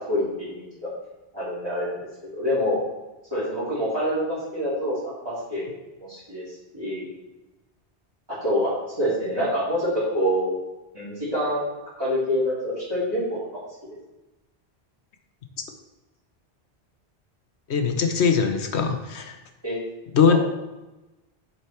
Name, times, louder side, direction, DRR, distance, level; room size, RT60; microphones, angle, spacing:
voice 1, 0.1-0.9 1.3-2.0 2.3-2.8 3.3-5.0 5.2-5.7 6.0-7.1 8.4-10.5 10.9-11.7 12.0-13.4 19.6-19.8 20.3-20.4, equal, 20° right, -13 dB, 3.5 m, -26 dB
voice 2, 17.7-19.4 20.1-20.4, left 6 dB, 80° left, 6 dB, 1.2 m, -21 dB
7.5 x 7.0 x 4.5 m, 1.0 s
omnidirectional pair, 1.1 m